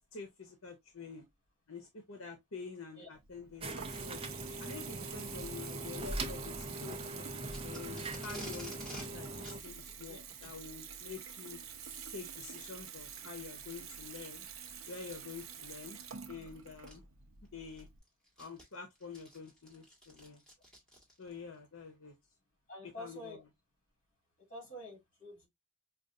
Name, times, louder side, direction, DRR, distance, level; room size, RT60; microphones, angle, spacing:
voice 1, 0.1-1.3 1.7-4.2 4.6-7.3 7.6-11.6 12.1-14.5 14.9-16.0 16.3-17.1 17.5-17.9 18.4-20.4 21.2-22.1 22.8-23.4, left 5 dB, 75° left, 0.9 m, -47 dB
Water tap faucet / Bathtub (filling or washing) / Trickle dribble, 3.1-18.0, right 7 dB, 70° right, 0.7 m, -48 dB
sound 1, 3.6-9.6, right 1 dB, 25° right, 0.6 m, -42 dB
Packing tape duct tape, 7.5-9.1 9.4-9.6 10.3-10.6 11.7-11.9 12.6-12.7 13.4-13.5 15.0-15.3 16.4-16.5 16.9-17.0 17.5-21.4, equal, 5° left, 1.7 m, -51 dB
voice 2, 22.7-23.4 24.5-25.5, left 1 dB, 40° left, 2.8 m, -47 dB
5.1 x 2.4 x 2.5 m
head